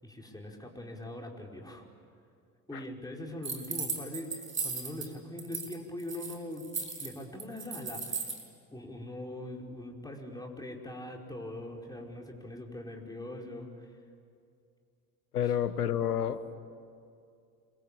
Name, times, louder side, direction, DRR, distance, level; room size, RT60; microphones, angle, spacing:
voice 1, 0.0-1.8 2.7-8.3 8.7-14.0 15.4-15.5, left 1 dB, 10° left, 0 dB, 5.0 m, -42 dB
sound 1, 3.4-5.1 5.4-5.7 6.0-8.4, right 5 dB, 25° right, 5.4 m, -36 dB
voice 2, 15.3-16.6, left 9 dB, 90° left, 14 dB, 1.0 m, -30 dB
26.5 x 23.0 x 8.8 m, 2.4 s
hypercardioid pair, 55°, 45 cm